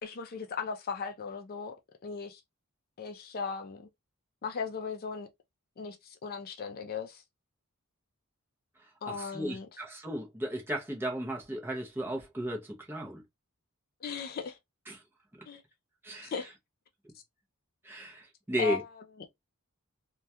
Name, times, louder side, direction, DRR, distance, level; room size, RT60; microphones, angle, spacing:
voice 1, 0.0-1.7 2.0-2.4 3.0-3.9 4.4-5.3 5.8-7.2 9.0-9.7 14.0-14.6 15.5-15.6 16.2-16.5 18.6-19.0, left 5 dB, 45° left, 0.4 m, -37 dB
voice 2, 9.1-13.2 14.9-15.0 16.0-16.3 17.8-18.8, equal, 10° right, 0.6 m, -35 dB
2.2 x 2.2 x 2.7 m
head